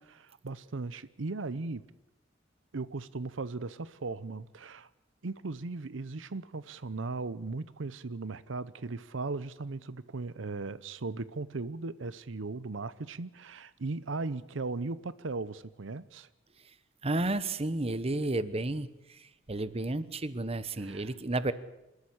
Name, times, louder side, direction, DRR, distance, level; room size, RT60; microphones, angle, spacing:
voice 1, 0.2-1.8 2.7-4.9 5.2-16.3 20.8-21.1, right 3 dB, 75° right, 17 dB, 0.7 m, -37 dB
voice 2, 17.0-21.5, right 2 dB, 30° right, 15 dB, 1.0 m, -32 dB
26.0 x 13.0 x 10.0 m, 0.93 s
head